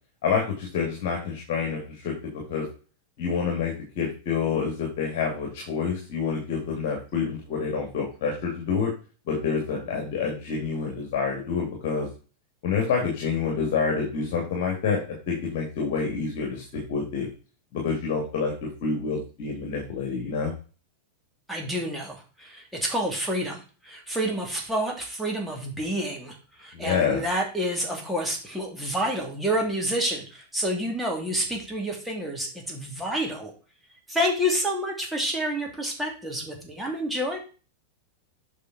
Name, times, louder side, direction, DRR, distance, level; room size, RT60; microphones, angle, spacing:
voice 1, 0.2-2.6 3.2-8.9 9.3-12.1 12.6-15.0 15.3-17.3 17.7-18.5 18.8-20.5 26.7-27.2, left 5 dB, 45° left, 0 dB, 2.5 m, -27 dB
voice 2, 21.5-33.5 34.1-37.4, equal, 5° right, 0 dB, 2.8 m, -29 dB
8.2 x 5.9 x 4.2 m, 0.36 s
figure-of-eight pair, 90°, 0 cm